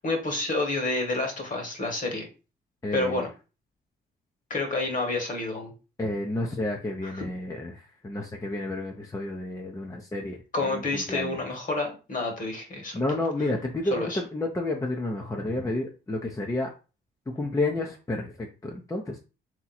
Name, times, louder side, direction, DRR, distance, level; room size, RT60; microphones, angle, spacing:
voice 1, 0.0-2.3 2.9-3.3 4.5-5.7 7.0-7.2 10.5-13.0 13.9-14.2, left 2 dB, 40° left, 3 dB, 1.7 m, -29 dB
voice 2, 2.8-3.2 6.0-11.4 12.9-16.7 17.3-19.2, left 2 dB, 15° left, 1 dB, 0.7 m, -31 dB
3.6 x 2.9 x 4.2 m, 0.32 s
cardioid pair, 90°, 20 cm